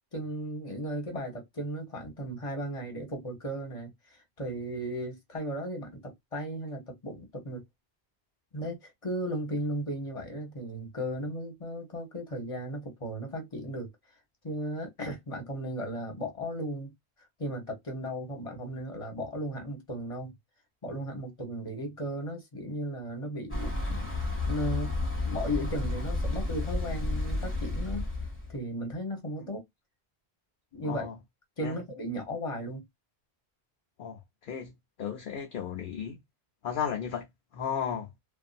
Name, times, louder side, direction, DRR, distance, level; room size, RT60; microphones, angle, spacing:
voice 1, 0.1-3.9 4.4-7.6 8.5-13.9 14.4-16.9 17.4-20.3 20.8-24.2 24.5-28.0 28.5-29.6 30.7-31.1 31.6-32.8, equal, 30° left, 1.1 m, -35 dB
Thunder / Bicycle, 23.5-28.5, left 2 dB, 10° left, 1.2 m, -31 dB
voice 2, 34.0-34.7 35.0-36.2 36.6-37.3 37.5-38.1, left 8 dB, 60° left, 0.7 m, -34 dB
2.6 x 2.5 x 2.4 m
omnidirectional pair, 1.1 m